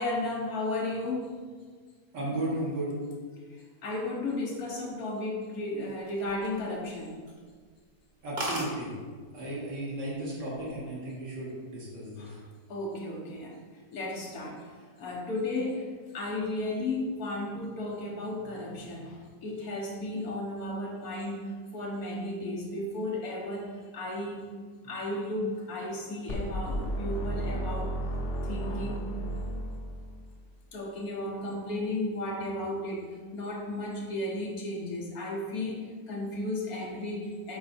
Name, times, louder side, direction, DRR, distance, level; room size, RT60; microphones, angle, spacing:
voice 1, 0.0-1.4 3.5-7.2 12.1-12.4 12.7-13.6 13.9-24.5 24.8-28.0 28.4-29.1 30.7-37.6, left 2 dB, 60° left, -2 dB, 1.7 m, -34 dB
voice 2, 2.1-3.0 8.2-8.9 9.3-12.3, right 1 dB, 75° right, -7 dB, 2.5 m, -34 dB
sound 1, 5.9-6.9 7.3-7.5 7.8-7.9 8.1-8.2 8.4-8.7 9.6-10.0 10.3-10.7, right 1 dB, 30° right, 1.1 m, -35 dB
sound 2, 26.3-30.3, right 1 dB, 80° left, 0.5 m, -33 dB
8.3 x 4.2 x 4.4 m, 1.5 s
omnidirectional pair, 1.9 m